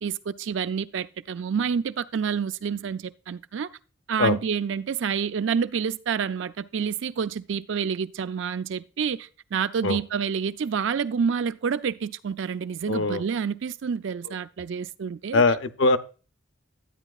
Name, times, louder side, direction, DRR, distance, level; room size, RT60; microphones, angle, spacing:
voice 1, 0.0-3.7 4.1-15.4, right 6 dB, 70° right, 0.4 m, -28 dB
voice 2, 12.9-13.2 15.3-16.0, left 3 dB, 70° left, 0.6 m, -21 dB
11.5 x 9.0 x 2.4 m
head